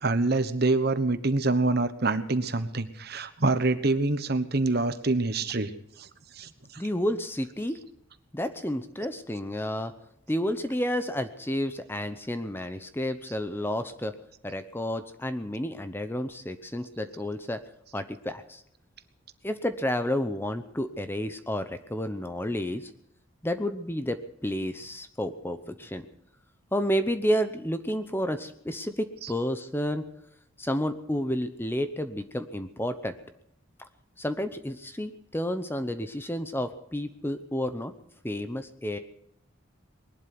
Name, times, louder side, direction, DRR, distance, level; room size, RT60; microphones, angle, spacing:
voice 1, 0.0-5.7 6.0-6.1 6.3-6.8, right 2 dB, 50° right, 11 dB, 1.1 m, -26 dB
voice 2, 6.8-7.8 8.3-9.9 10.3-14.1 14.4-17.6 17.9-18.6 19.4-22.9 23.4-24.2 24.4-26.1 26.7-30.0 30.6-33.1 33.8-33.9 34.2-37.9 38.2-39.0, equal, 10° left, 9 dB, 0.8 m, -30 dB
21.0 x 11.5 x 6.0 m, 0.76 s
head